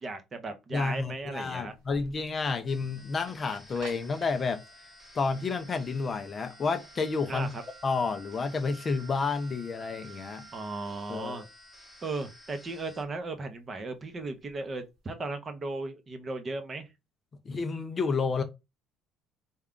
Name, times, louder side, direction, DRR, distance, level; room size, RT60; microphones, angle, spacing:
voice 1, 0.0-1.7 7.3-7.6 10.5-11.5 12.0-16.9, right 3 dB, 25° right, 0.6 m, -36 dB
voice 2, 0.7-4.6 5.1-7.5 7.8-10.5 11.1-11.5 17.5-18.4, left 4 dB, 25° left, 0.4 m, -30 dB
sound 1, 0.8-15.0, right 5 dB, 90° right, 1.2 m, -54 dB
sound 2, 2.7-13.0, left 1 dB, 5° right, 1.0 m, -54 dB
3.5 x 2.2 x 3.6 m
cardioid pair, 155°, 0 cm